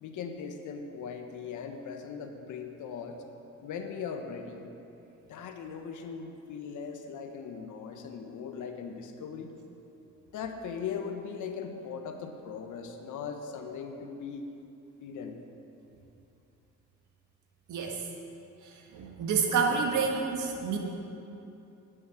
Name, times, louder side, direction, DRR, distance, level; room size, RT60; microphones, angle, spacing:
voice 1, 0.0-3.2 3.6-4.7 5.3-9.5 10.3-14.5 15.0-15.4, left 6 dB, 80° left, 5 dB, 1.2 m, -39 dB
voice 2, 17.7-18.0 18.6-20.8, right 5 dB, 75° right, 1 dB, 1.8 m, -29 dB
11.0 x 6.4 x 9.3 m, 2.9 s
cardioid pair, 90°, 30 cm